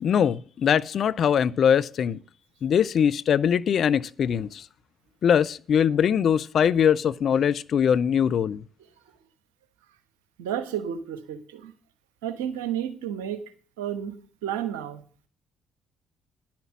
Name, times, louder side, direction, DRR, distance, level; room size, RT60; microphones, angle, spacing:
voice 1, 0.0-2.2 2.6-4.6 5.2-8.6, left 8 dB, 55° left, 0.4 m, -22 dB
voice 2, 10.4-11.7 12.2-13.4 13.8-14.2 14.4-15.0, right 9 dB, 80° right, 1.0 m, -31 dB
10.5 x 5.9 x 7.3 m
hypercardioid pair, 45°, 0 cm